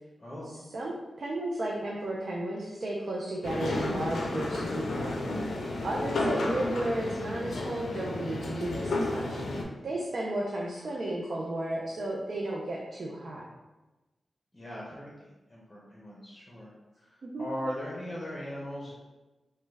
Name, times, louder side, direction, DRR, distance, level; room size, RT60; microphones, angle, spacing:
voice 1, 1.2-5.5 5.8-13.4 17.2-17.5, right 1 dB, 65° right, -3 dB, 0.4 m, -34 dB
sound 1, 3.4-9.6, left 2 dB, 85° left, 0.4 m, -32 dB
voice 2, 5.9-6.2 14.5-18.9, equal, 25° left, -5 dB, 0.8 m, -39 dB
3.0 x 2.2 x 3.3 m, 1.1 s
cardioid pair, 55°, 0 cm